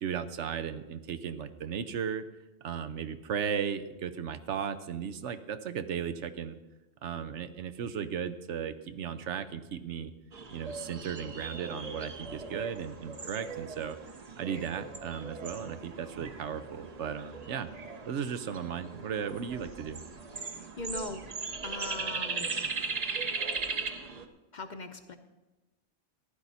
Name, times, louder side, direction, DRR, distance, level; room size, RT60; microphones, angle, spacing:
voice 1, 0.0-2.2 2.6-6.6 7.0-10.1 10.5-14.0 14.4-17.7 18.1-20.0, right 7 dB, 80° right, 11 dB, 1.1 m, -36 dB
sound 1, 10.3-24.3, right 4 dB, 40° right, 0.8 m, -38 dB
voice 2, 20.5-21.2 21.6-22.8 24.5-25.2, left 3 dB, 45° left, 8 dB, 0.8 m, -40 dB
15.0 x 11.0 x 4.1 m, 1.1 s
omnidirectional pair, 1.2 m